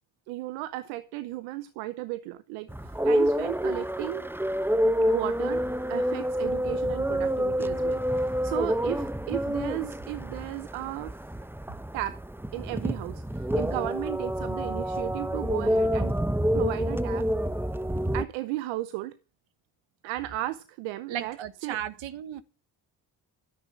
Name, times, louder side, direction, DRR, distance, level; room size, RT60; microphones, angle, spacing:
voice 1, 0.3-2.7 3.0-4.3 5.1-11.2 11.9-12.2 12.5-16.1 16.5-17.3 18.1-19.1 20.0-21.8, right 16 dB, 85° right, 0.9 m, -35 dB
sound 1, 2.7-18.2, equal, 5° right, 0.9 m, -28 dB
voice 2, 21.1-22.4, right 10 dB, 70° right, 1.6 m, -35 dB
12.5 x 10.5 x 6.0 m
hypercardioid pair, 45°, 47 cm